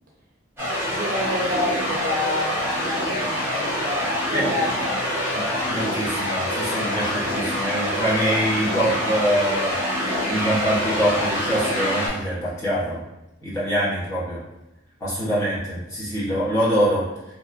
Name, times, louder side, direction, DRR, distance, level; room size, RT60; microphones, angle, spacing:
sound 1, 0.6-12.1, equal, 10° right, 0.9 m, -25 dB
voice 1, 0.8-5.0, left 2 dB, 45° right, -3 dB, 0.5 m, -29 dB
voice 2, 5.3-9.7 10.3-13.0 13.4-14.4 15.0-17.1, right 1 dB, 15° left, -10 dB, 0.9 m, -24 dB
2.8 x 2.3 x 2.4 m, 0.96 s
head